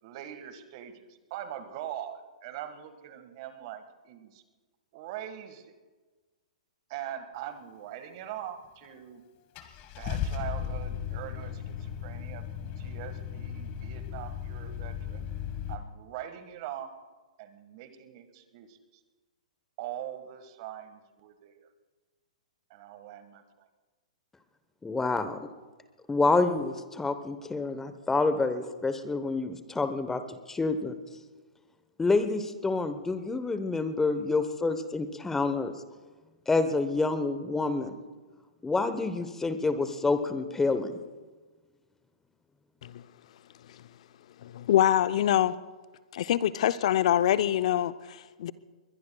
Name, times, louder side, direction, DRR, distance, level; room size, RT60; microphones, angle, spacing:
voice 1, 0.0-4.4 4.9-5.7 6.9-9.2 10.0-15.3 15.7-16.9 17.4-18.8 19.8-21.7 22.7-23.7, right 11 dB, 45° right, 9 dB, 1.7 m, -42 dB
Car / Engine starting, 8.8-8.9 9.6-15.7, left 8 dB, 35° left, 1.6 m, -36 dB
voice 2, 24.8-25.5 26.1-30.9 32.0-35.7 36.5-38.0 38.6-41.0, left 3 dB, 10° left, 10 dB, 1.0 m, -28 dB
voice 3, 44.4-45.6 46.1-48.5, left 11 dB, 55° left, 14 dB, 0.6 m, -25 dB
21.5 x 21.5 x 2.3 m, 1.3 s
hypercardioid pair, 120°, 4 cm